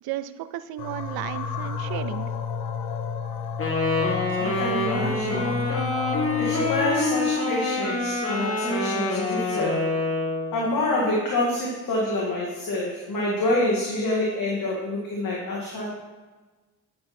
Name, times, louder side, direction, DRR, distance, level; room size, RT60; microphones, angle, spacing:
voice 1, 0.0-2.3, right 13 dB, 75° right, 14 dB, 0.6 m, -34 dB
sound 1, 0.8-7.0, left 6 dB, 80° left, 0.9 m, -31 dB
Wind instrument woodwind instrument, 3.6-10.5, left 2 dB, 35° left, 2.3 m, -26 dB
voice 2, 4.4-5.5 6.4-9.9 10.5-15.9, left 1 dB, 60° left, -4 dB, 2.1 m, -27 dB
9.2 x 6.0 x 4.3 m, 1.3 s
supercardioid pair, 55°, 38 cm